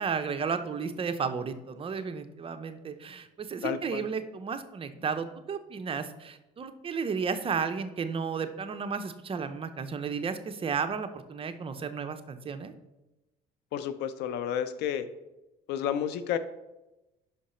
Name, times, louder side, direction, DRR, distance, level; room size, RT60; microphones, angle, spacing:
voice 1, 0.0-12.7, right 5 dB, 35° right, 9 dB, 0.6 m, -33 dB
voice 2, 3.6-4.1 13.7-15.1 15.7-16.4, left 9 dB, 85° left, 12 dB, 0.5 m, -31 dB
5.7 x 5.1 x 4.2 m, 0.99 s
cardioid pair, 110°, 17 cm